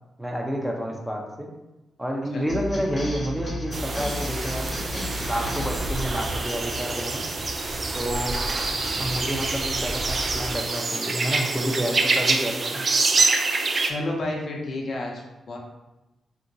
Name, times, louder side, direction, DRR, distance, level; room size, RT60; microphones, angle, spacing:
voice 1, 0.2-1.5 2.0-4.6 5.2-7.2 7.9-8.3 8.9-12.9, equal, 10° right, 0 dB, 0.6 m, -29 dB
voice 2, 2.3-2.6 13.8-15.6, left 2 dB, 60° left, -1 dB, 0.6 m, -31 dB
sound 1, 2.5-8.0, left 1 dB, 30° left, 0.8 m, -34 dB
sound 2, 3.6-10.6, right 1 dB, 80° right, 1.1 m, -35 dB
sound 3, 3.7-13.9, right 3 dB, 50° right, 0.3 m, -26 dB
2.8 x 2.5 x 2.7 m, 1.0 s
supercardioid pair, 55°, 0 cm